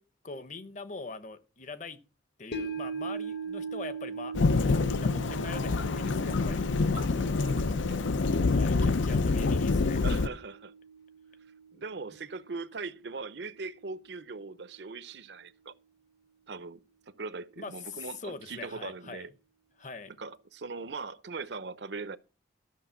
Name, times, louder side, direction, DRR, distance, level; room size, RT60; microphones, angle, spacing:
voice 1, 0.2-2.0 2.4-6.7 8.5-10.0 17.6-19.3 19.8-20.1, left 3 dB, 40° left, 0.8 m, -43 dB
sound 1, 2.5-12.9 13.3-13.4, right 5 dB, 65° left, 1.3 m, -41 dB
Thunderstorm / Rain, 4.3-10.3, left 3 dB, 85° left, 0.6 m, -26 dB
voice 2, 6.9-8.0 10.0-10.7 11.7-15.7 16.5-16.8 17.1-19.3 20.1-22.2, right 4 dB, 65° right, 0.7 m, -40 dB
13.0 x 6.5 x 5.7 m
head